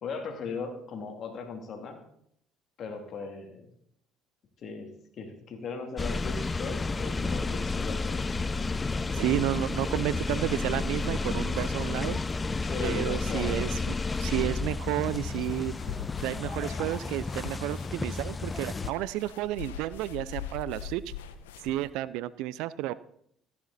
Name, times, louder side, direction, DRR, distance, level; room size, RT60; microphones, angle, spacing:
voice 1, 0.0-2.0 2.8-3.7 4.6-4.9 5.2-8.2 12.4-13.7, left 4 dB, 55° left, 4 dB, 2.7 m, -38 dB
sound 1, 6.0-18.9, left 3 dB, 25° left, 0.5 m, -31 dB
voice 2, 9.1-12.2 12.8-15.7 16.2-21.0 21.6-22.9, right 15 dB, 75° right, 19 dB, 0.5 m, -31 dB
sound 2, 15.0-21.9, left 8 dB, 90° left, 0.8 m, -42 dB
14.5 x 9.9 x 4.1 m, 0.70 s
hypercardioid pair, 65°, 0 cm